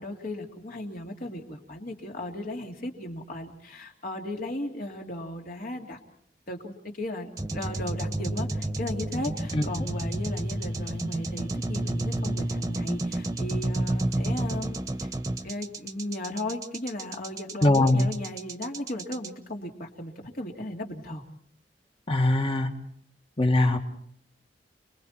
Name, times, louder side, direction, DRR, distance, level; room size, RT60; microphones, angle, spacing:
voice 1, 0.0-6.0 6.5-15.1 15.4-21.2, left 1 dB, 50° left, 2 dB, 2.9 m, -36 dB
sound 1, 7.4-19.3, right 1 dB, 20° right, 1.3 m, -30 dB
voice 2, 17.6-18.1 22.1-22.7 23.4-23.8, left 2 dB, 30° left, 5 dB, 2.0 m, -21 dB
30.0 x 22.0 x 4.4 m, 0.65 s
head